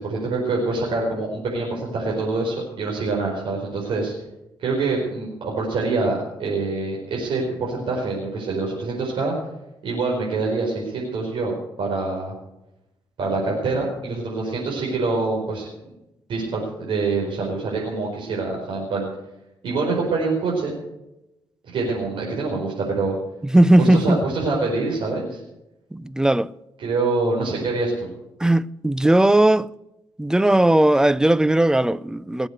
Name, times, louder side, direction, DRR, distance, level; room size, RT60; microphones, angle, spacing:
voice 1, 0.0-4.1 4.6-9.3 9.8-12.3 13.2-15.7 16.3-19.1 19.6-20.7 21.7-23.1 23.8-25.4 26.8-28.1, right 3 dB, 70° right, 4.8 m, -25 dB
voice 2, 23.5-24.2 25.9-26.5 28.4-29.7 30.2-32.5, right 1 dB, 5° right, 0.5 m, -17 dB
20.0 x 8.0 x 8.0 m
cardioid pair, 95°, 9 cm